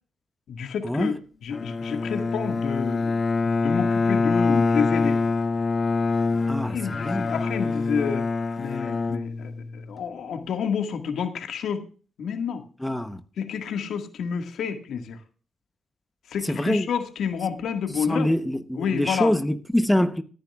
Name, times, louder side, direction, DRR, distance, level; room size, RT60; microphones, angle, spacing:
voice 1, 0.5-5.2 6.7-8.3 8.6-11.8 12.2-12.6 13.4-15.2 16.3-18.3 18.8-19.3, left 7 dB, 75° left, 1.8 m, -29 dB
Bowed string instrument, 1.5-10.0, left 4 dB, 45° left, 1.1 m, -25 dB
voice 2, 6.5-7.3 12.8-13.2 16.4-16.9 18.1-20.2, left 1 dB, 5° left, 0.9 m, -24 dB
19.5 x 10.5 x 2.4 m
cardioid pair, 70°, 0 cm